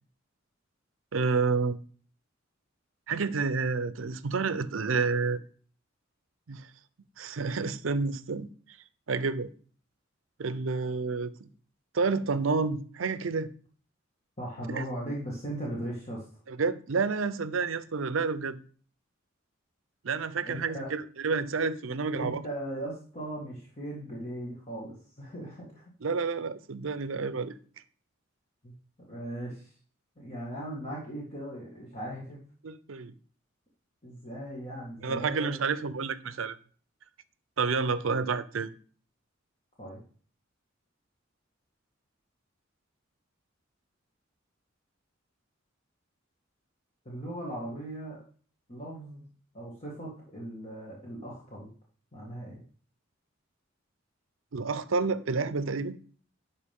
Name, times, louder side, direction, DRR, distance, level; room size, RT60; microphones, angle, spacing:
voice 1, 1.1-1.8 3.1-5.4 6.5-6.7 7.2-8.5 9.1-9.5 10.4-11.5 11.9-13.5 14.7-14.8 16.5-18.6 20.0-22.4 26.0-27.5 32.6-33.1 35.0-36.6 37.6-38.7 54.5-56.0, right 4 dB, 90° right, 0.6 m, -29 dB
voice 2, 14.4-16.3 20.5-20.9 22.1-25.8 28.6-28.7 29.1-29.7 30.2-32.4 34.0-35.6 39.8-40.0 47.1-48.2 48.7-49.2 49.5-51.7 52.1-52.6, right 1 dB, 35° left, 2.0 m, -38 dB
11.5 x 4.7 x 3.6 m
head